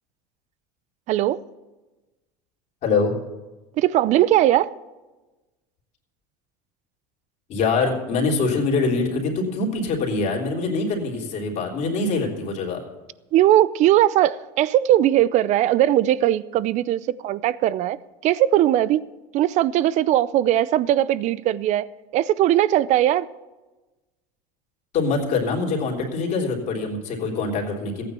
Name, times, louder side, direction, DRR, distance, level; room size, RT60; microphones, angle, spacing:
voice 1, 1.1-1.4 3.8-4.7 13.3-18.0 18.2-19.1 19.3-21.9 22.1-23.3, right 13 dB, 50° right, 0.6 m, -19 dB
voice 2, 2.8-3.1 7.5-12.8 24.9-28.0, left 3 dB, 45° left, 3.3 m, -24 dB
14.5 x 9.2 x 6.9 m
supercardioid pair, 115°, 16 cm